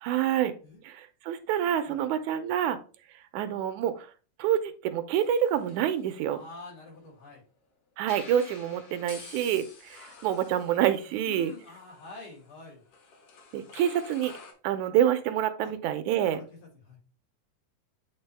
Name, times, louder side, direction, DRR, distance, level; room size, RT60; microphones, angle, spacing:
voice 1, 0.0-0.5 0.8-2.8 3.3-4.1 4.4-6.4 8.0-11.5 13.5-14.3 14.6-16.4, right 10 dB, 80° right, 10 dB, 2.0 m, -27 dB
sound 1, 5.1-7.2 8.0-14.5, left 4 dB, 60° left, 2.1 m, -50 dB
voice 2, 6.3-7.4 11.1-12.8 15.6-15.7 16.2-16.4 16.8-17.0, left 3 dB, 75° left, -5 dB, 4.9 m, -46 dB
8.9 x 3.4 x 3.3 m, 0.36 s
omnidirectional pair, 3.5 m